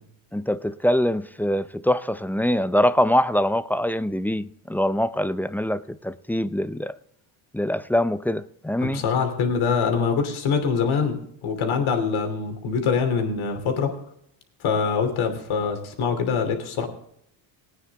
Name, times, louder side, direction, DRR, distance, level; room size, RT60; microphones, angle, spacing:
voice 1, 0.3-7.0 7.5-9.0, equal, 5° left, 0.4 m, -23 dB
voice 2, 8.8-14.0 14.6-16.8, left 5 dB, 70° left, 2.9 m, -24 dB
18.5 x 9.4 x 3.5 m
cardioid pair, 90°, 50 cm